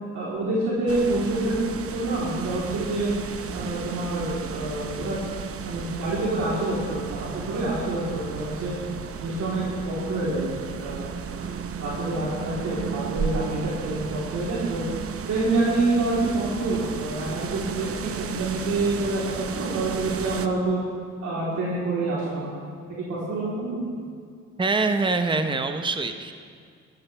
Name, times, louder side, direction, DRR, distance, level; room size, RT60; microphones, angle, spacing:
voice 1, 0.1-1.5 1.9-3.1 3.5-5.2 5.6-8.7 9.2-10.5 10.8-11.1 11.3-14.8 15.3-20.8 21.2-22.5 22.9-23.8, right 2 dB, 70° right, -7 dB, 3.6 m, -27 dB
sound 1, 0.9-20.5, right 7 dB, 50° right, 0.8 m, -34 dB
voice 2, 24.6-26.3, right 3 dB, 15° right, 7 dB, 0.9 m, -24 dB
15.5 x 13.5 x 3.4 m, 2.2 s
cardioid pair, 90°, 30 cm